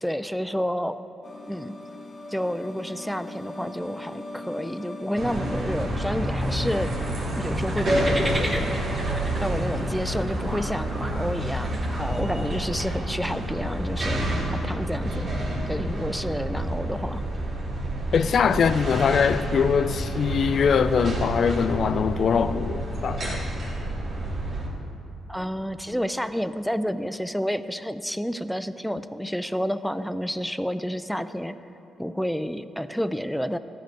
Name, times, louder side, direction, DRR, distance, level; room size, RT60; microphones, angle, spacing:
voice 1, 0.0-1.0 1.5-1.7 2.3-6.9 7.4-8.7 9.4-14.2 14.5-15.3 15.7-17.2 18.5-18.6 25.3-31.6 32.0-33.6, equal, ahead, 12 dB, 0.4 m, -30 dB
sound 1, 1.2-8.2, left 2 dB, 35° left, 1.2 m, -41 dB
sound 2, 5.1-24.7, right 1 dB, 50° right, 3.2 m, -28 dB
sound 3, 7.4-12.4, right 1 dB, 15° right, 1.6 m, -36 dB
voice 2, 18.1-23.4, left 6 dB, 60° left, 13 dB, 0.4 m, -22 dB
14.0 x 5.1 x 9.3 m, 2.9 s
cardioid pair, 80°, 0 cm